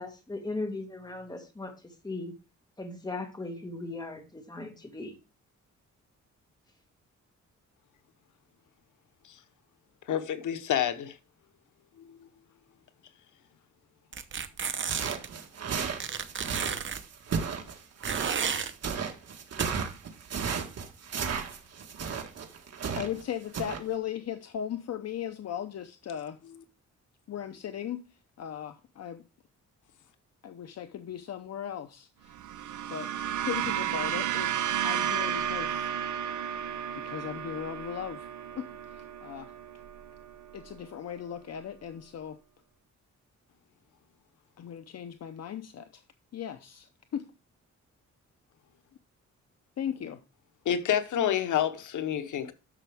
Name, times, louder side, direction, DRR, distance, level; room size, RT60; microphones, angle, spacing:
voice 1, 0.0-1.7 2.0-2.3 2.8-5.2, left 2 dB, 15° left, 1.9 m, -37 dB
voice 2, 10.1-11.2 12.1-12.2 50.6-52.5, left 9 dB, 90° left, 0.9 m, -28 dB
sound 1, 14.1-15.3 16.0-17.0 18.0-18.7 19.6-19.7, right 7 dB, 40° right, 0.9 m, -32 dB
sound 2, 14.9-23.2 23.5-23.8, right 6 dB, 55° right, 1.7 m, -34 dB
voice 3, 22.9-26.4 27.3-28.0 28.4-29.2 30.4-32.3 32.9-33.1 33.4-35.9 37.0-38.3 38.5-39.5 40.5-42.4 44.6-46.0 46.3-47.2 49.8-50.2, left 9 dB, 60° left, 0.7 m, -37 dB
sound 3, 32.3-40.8, right 10 dB, 80° right, 0.8 m, -33 dB
10.5 x 6.9 x 3.4 m
wide cardioid pair, 135°, 30 cm